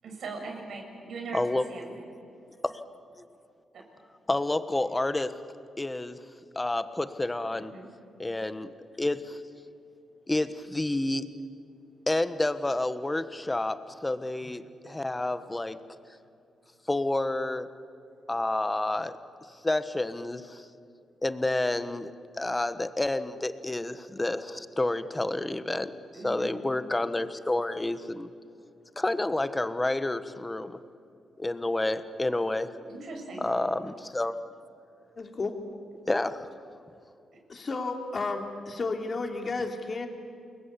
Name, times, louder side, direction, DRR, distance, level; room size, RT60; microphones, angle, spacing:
voice 1, 0.0-1.4 1.7-2.0 7.5-7.9 26.1-26.5 32.8-33.4, right 3 dB, 70° right, 2 dB, 6.5 m, -40 dB
voice 2, 1.3-1.6 2.6-2.8 3.2-3.3 4.3-5.4 5.8-6.2 6.5-7.7 8.2-9.4 10.3-11.3 12.1-15.8 16.9-17.7 18.3-19.2 19.6-20.7 21.2-22.1 22.4-25.9 26.2-28.3 29.0-30.8 31.4-32.7 33.4-34.3 36.1-36.5, left 2 dB, 15° left, 12 dB, 1.3 m, -29 dB
voice 3, 35.2-35.5 37.5-40.1, left 3 dB, 40° left, 4 dB, 3.2 m, -32 dB
28.5 x 21.5 x 8.4 m, 2.6 s
cardioid pair, 100°, 0 cm